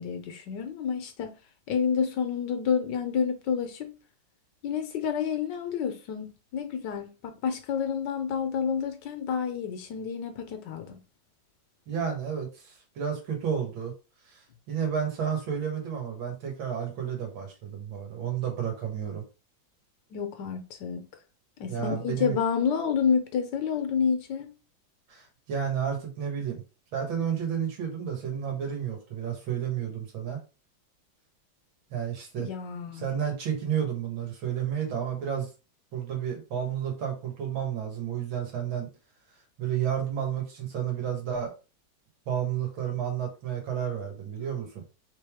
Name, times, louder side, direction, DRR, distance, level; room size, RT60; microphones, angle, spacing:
voice 1, 0.0-1.3 1.7-3.9 4.6-11.0 20.1-21.0 21.6-24.5 32.4-33.1, left 7 dB, 70° left, 1.3 m, -29 dB
voice 2, 11.9-13.9 14.3-19.2 21.7-22.4 25.1-26.6 26.9-30.4 31.9-32.5 32.9-35.5 35.9-38.9 39.6-41.5 42.3-44.8, right 8 dB, 80° right, 2.2 m, -31 dB
4.0 x 3.6 x 3.5 m
omnidirectional pair, 2.1 m